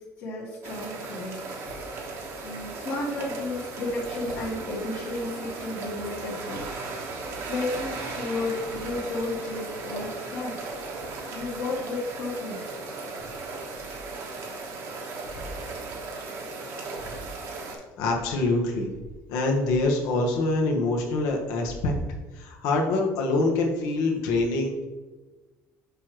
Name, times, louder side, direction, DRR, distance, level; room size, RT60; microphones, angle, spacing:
voice 1, 0.2-1.4 2.4-6.6 7.5-10.5 11.3-12.7, left 2 dB, 65° left, -9 dB, 1.7 m, -32 dB
sound 1, 0.6-17.8, right 3 dB, 55° right, 1.2 m, -36 dB
voice 2, 18.0-18.9 19.3-21.9 22.3-24.9, left 2 dB, 85° left, 1 dB, 1.2 m, -25 dB
6.8 x 4.9 x 3.0 m, 1.2 s
cardioid pair, 125°, 6 cm